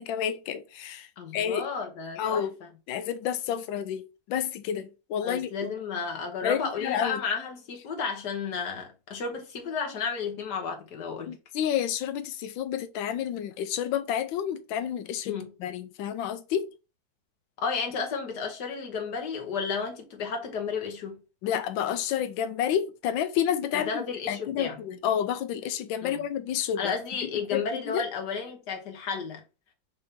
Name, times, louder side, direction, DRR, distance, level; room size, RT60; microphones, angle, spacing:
voice 1, 0.0-1.1 1.3-1.6 2.2-2.5 2.9-5.5 6.4-7.2 11.3-16.7 21.4-26.9 27.5-28.0, left 9 dB, 80° left, 1.3 m, -30 dB
voice 2, 1.2-2.7 5.2-11.4 15.2-15.5 17.6-21.2 23.7-24.8 26.0-26.2 26.8-29.4, left 5 dB, 60° left, 1.6 m, -32 dB
5.3 x 2.8 x 3.6 m
omnidirectional pair, 2.1 m